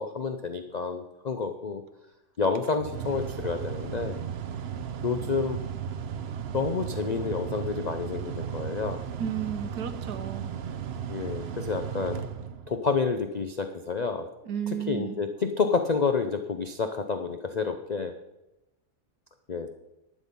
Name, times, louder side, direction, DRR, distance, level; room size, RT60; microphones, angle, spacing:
voice 1, 0.0-1.8 2.4-4.2 5.0-5.6 6.5-9.0 11.1-12.2 12.7-14.3 14.9-18.1 19.5-19.7, left 5 dB, 55° left, 7 dB, 0.4 m, -29 dB
Mechanical fan, 2.4-13.0, right 8 dB, 55° right, 0.7 m, -35 dB
voice 2, 9.2-10.5 14.4-15.2, right 8 dB, 90° right, 8 dB, 1.4 m, -33 dB
12.0 x 8.5 x 5.4 m, 0.95 s
omnidirectional pair, 1.7 m